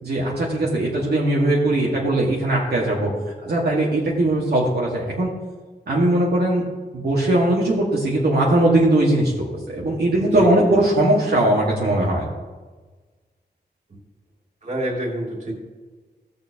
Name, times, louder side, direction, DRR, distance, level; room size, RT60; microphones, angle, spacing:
voice 1, 0.0-3.1 3.4-5.3 5.9-6.6 6.9-12.2, right 1 dB, 70° right, -5 dB, 1.8 m, -20 dB
voice 2, 10.2-10.8 14.6-15.5, right 1 dB, 40° right, -3 dB, 2.9 m, -27 dB
17.0 x 6.9 x 2.9 m, 1.3 s
wide cardioid pair, 130°, 18 cm